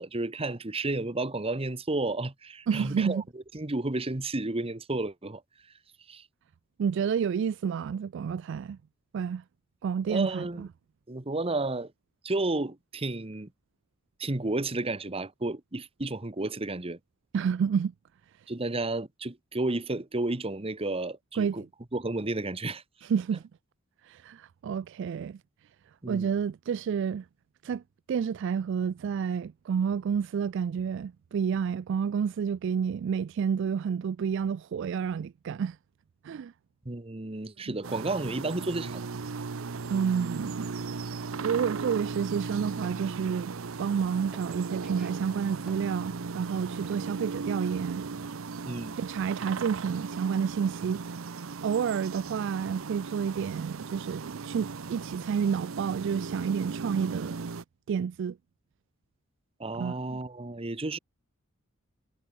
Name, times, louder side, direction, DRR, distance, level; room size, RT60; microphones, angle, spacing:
voice 1, 0.0-5.4 6.1-6.3 10.1-10.6 11.1-11.9 12.2-13.5 14.2-17.0 18.5-21.6 21.9-22.8 26.0-26.3 36.8-39.1 48.7-48.9 59.6-61.0, right 2 dB, 30° right, 1.2 m, -32 dB
voice 2, 2.7-3.2 6.8-8.8 9.1-9.4 9.8-10.7 17.3-17.9 21.3-21.6 23.0-23.4 24.0-25.4 26.1-27.3 27.6-27.8 28.1-35.8 36.2-36.5 37.7-37.8 39.9-40.7 41.4-48.0 49.0-51.0 51.6-57.5 57.9-58.4 59.8-59.9, right 7 dB, 60° right, 0.3 m, -30 dB
sound 1, 37.8-57.6, right 4 dB, 80° right, 0.7 m, -37 dB
sound 2, 42.0-47.4, right 1 dB, 5° right, 3.2 m, -58 dB
head